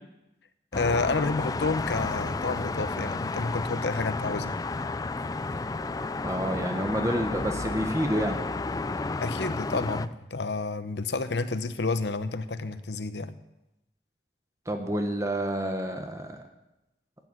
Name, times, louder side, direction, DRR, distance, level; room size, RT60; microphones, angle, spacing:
voice 1, 0.7-4.5 9.2-13.4, left 3 dB, 75° left, 12 dB, 0.9 m, -30 dB
sound 1, 0.7-10.1, left 3 dB, 20° left, 0.4 m, -32 dB
voice 2, 6.2-8.4 14.7-16.4, equal, 15° right, 5 dB, 1.1 m, -29 dB
12.0 x 7.9 x 9.7 m, 0.93 s
head